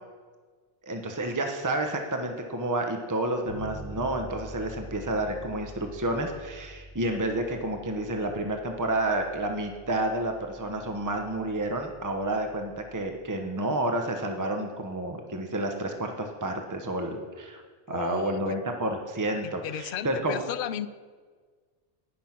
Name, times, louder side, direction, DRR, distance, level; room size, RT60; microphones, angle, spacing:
voice 1, 0.9-17.6 17.9-20.4, right 1 dB, 20° right, 4 dB, 0.9 m, -30 dB
Bass guitar, 3.5-13.2, right 1 dB, 45° right, 3.5 m, -46 dB
voice 2, 17.9-18.5 19.4-20.9, left 10 dB, 60° left, 14 dB, 0.7 m, -34 dB
18.5 x 6.2 x 5.9 m, 1.5 s
omnidirectional pair, 1.1 m